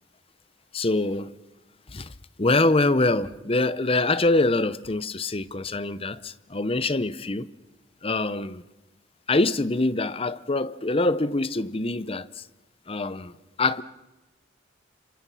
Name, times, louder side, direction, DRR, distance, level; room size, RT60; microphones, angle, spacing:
voice 1, 0.7-1.3 1.9-2.1 2.4-7.5 8.0-8.6 9.3-12.4 12.9-13.3 13.6-13.8, left 2 dB, 30° left, 0.8 m, -24 dB
30.0 x 27.0 x 5.7 m
head